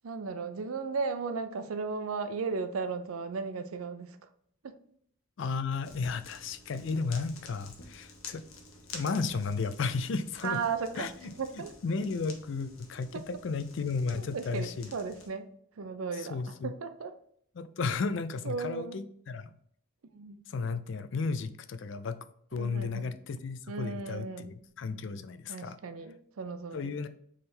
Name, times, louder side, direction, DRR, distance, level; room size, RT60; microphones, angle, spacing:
voice 1, 0.0-4.2 4.6-4.8 10.4-11.7 13.1-13.2 14.1-15.5 15.8-17.1 18.4-19.0 20.1-20.5 22.5-23.1 23.7-24.5 25.5-26.9, right 4 dB, 90° right, 9 dB, 0.5 m, -36 dB
voice 2, 5.4-8.4 8.9-10.6 10.9-11.3 11.8-14.9 16.2-16.7 17.6-19.5 20.5-22.2 22.5-25.8 26.7-27.1, left 4 dB, 60° left, 11 dB, 0.4 m, -34 dB
sound 1, 5.8-15.3, left 3 dB, 80° left, 1.0 m, -50 dB
3.7 x 3.3 x 4.3 m, 0.66 s
head